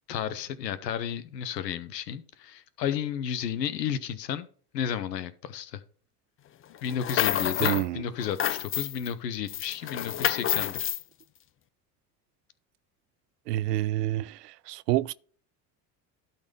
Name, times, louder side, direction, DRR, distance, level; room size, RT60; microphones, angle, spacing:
voice 1, 0.1-4.5 4.7-5.8 6.8-10.9, left 9 dB, 85° left, 1.0 m, -32 dB
sound 1, 6.8-7.9 8.2-9.1 9.5-11.0, left 11 dB, 30° left, 0.5 m, -29 dB
voice 2, 7.6-8.0 13.5-15.1, right 15 dB, 85° right, 0.6 m, -28 dB
12.0 x 4.2 x 5.4 m
hypercardioid pair, 70°, 48 cm